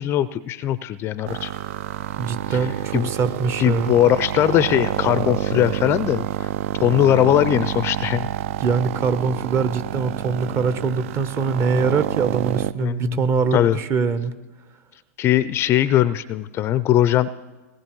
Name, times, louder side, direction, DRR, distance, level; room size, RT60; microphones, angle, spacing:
voice 1, 0.0-1.5 2.5-2.7 2.9-3.1 3.6-6.5 6.8-8.3 11.5-11.6 12.8-13.2 13.5-13.8 15.2-17.3, left 12 dB, 30° left, 16 dB, 0.4 m, -20 dB
sound 1, 1.3-12.7, right 11 dB, 60° right, 0.4 m, -28 dB
voice 2, 2.2-3.9 8.6-14.4, right 5 dB, 30° right, 11 dB, 0.9 m, -23 dB
20.5 x 18.5 x 3.1 m, 1.2 s
hypercardioid pair, 115°, 8 cm